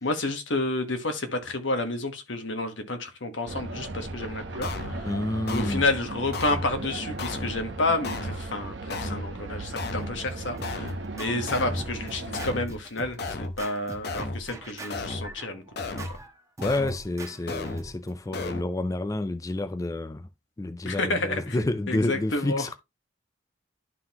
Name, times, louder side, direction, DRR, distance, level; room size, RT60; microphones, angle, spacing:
voice 1, 0.0-5.1 5.5-16.0 20.8-22.7, left 2 dB, 85° left, 1.3 m, -30 dB
sound 1, 3.5-12.6, right 2 dB, 70° right, 0.9 m, -37 dB
sound 2, 4.0-4.2 4.6-5.0 5.5-5.9 6.3-6.7 7.2-7.6 8.0-8.5 8.9-9.3 9.8-10.2 10.6-11.0 11.5-11.9 12.3-12.7 13.2-13.6 14.0-14.5 14.9-15.3 15.8-16.2 16.6-17.0 17.5-17.9 18.3-18.6, left 3 dB, 60° left, 0.7 m, -34 dB
voice 2, 5.0-5.8 16.6-20.3 20.6-22.8, left 2 dB, 20° left, 0.4 m, -29 dB
Scratching (performance technique), 10.0-18.5, right 2 dB, 15° right, 1.1 m, -44 dB
11.0 x 3.8 x 2.9 m
head